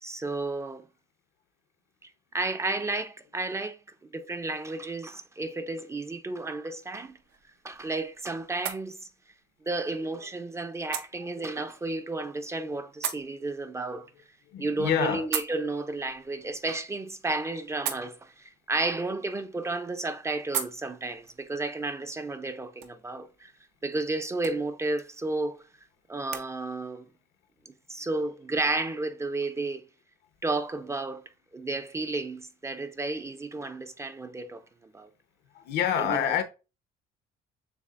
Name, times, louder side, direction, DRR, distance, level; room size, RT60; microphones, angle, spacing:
voice 1, 0.0-0.8 2.3-3.8 4.1-7.1 7.6-9.0 9.7-14.1 14.6-23.5 23.8-25.6 26.1-27.1 27.9-29.8 30.4-31.2 31.5-35.1 36.0-36.2, right 2 dB, 15° right, 0.4 m, -32 dB
sound 1, 7.0-26.5, right 9 dB, 80° right, 0.7 m, -42 dB
voice 2, 14.5-15.3 35.5-36.4, left 9 dB, 80° left, 0.8 m, -28 dB
6.9 x 2.5 x 2.4 m
cardioid pair, 110°, 17 cm